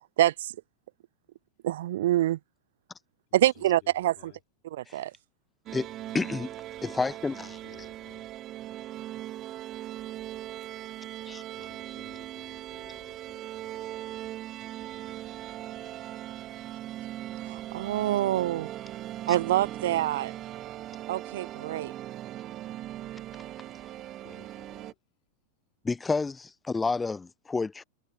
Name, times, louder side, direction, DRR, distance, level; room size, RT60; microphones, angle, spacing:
voice 1, 0.2-0.5 1.6-2.4 3.3-4.3 4.7-5.1 17.4-18.7 19.3-20.3 21.1-21.9, right 14 dB, 55° right, 0.3 m, -26 dB
voice 2, 3.3-4.4 7.4-8.3 11.5-14.3 14.8-16.2 24.2-25.0, left 33 dB, 45° left, 3.4 m, -57 dB
sound 1, 5.7-24.9, right 13 dB, 35° right, 0.9 m, -39 dB
voice 3, 6.1-6.5 6.8-7.6 11.3-11.4 25.8-27.8, left 4 dB, 10° left, 0.9 m, -30 dB
figure-of-eight pair, 90°, 0 cm